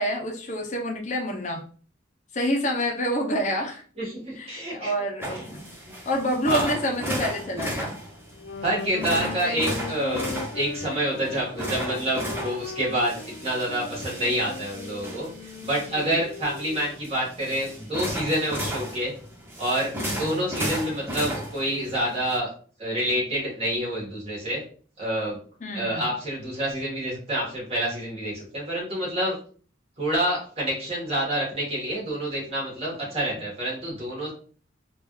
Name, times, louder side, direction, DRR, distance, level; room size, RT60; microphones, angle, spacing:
voice 1, 0.0-1.6 2.3-3.8 4.4-5.6 6.1-8.0 15.9-16.2 20.0-20.4 25.6-26.0 33.1-33.3, equal, 40° left, 1 dB, 0.7 m, -28 dB
voice 2, 4.0-4.9 5.3-5.5 5.8-5.9 6.5-6.7 8.6-19.1 19.6-22.5 22.8-24.6 25.0-25.4 25.7-29.3 30.0-34.3, right 1 dB, 30° right, -5 dB, 1.6 m, -28 dB
sound 1, 5.2-22.4, right 1 dB, 10° right, 0.7 m, -35 dB
Wind instrument woodwind instrument, 8.3-17.0, left 5 dB, 80° left, 0.3 m, -38 dB
3.4 x 2.5 x 3.1 m, 0.43 s
head